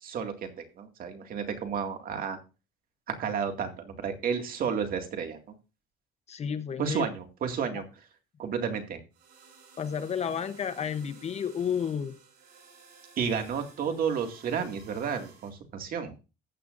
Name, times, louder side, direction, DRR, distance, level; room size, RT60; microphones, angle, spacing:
voice 1, 0.0-2.4 3.2-5.4 6.8-7.8 8.4-9.0 13.2-16.1, right 6 dB, 60° right, 2.2 m, -31 dB
voice 2, 6.3-7.1 9.8-12.2, left 7 dB, 40° left, 0.9 m, -31 dB
sound 1, 9.1-15.5, right 5 dB, 85° right, 7.0 m, -55 dB
14.5 x 8.6 x 2.6 m
cardioid pair, 110°, 17 cm